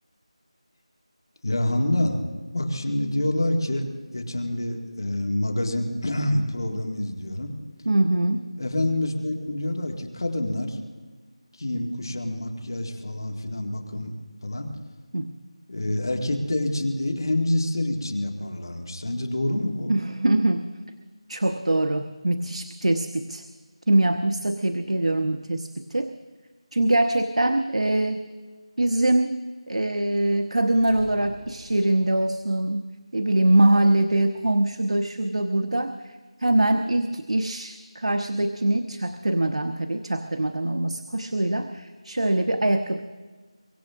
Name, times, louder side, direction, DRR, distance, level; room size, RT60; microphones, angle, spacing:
voice 1, 1.4-2.2 2.5-7.5 8.6-10.8 11.6-14.1 14.4-14.7 15.7-20.0, left 1 dB, 45° left, 2 dB, 2.0 m, -27 dB
voice 2, 7.8-8.4 15.1-15.3 19.9-20.7 21.3-23.4 23.9-26.1 26.7-28.2 28.8-29.4 29.7-32.9 33.1-36.1 36.4-43.0, right 1 dB, 85° right, 7 dB, 1.1 m, -23 dB
sound 1, 30.8-32.4, right 1 dB, 5° right, 0.8 m, -45 dB
24.0 x 16.0 x 3.7 m, 1.4 s
figure-of-eight pair, 180°, 3 cm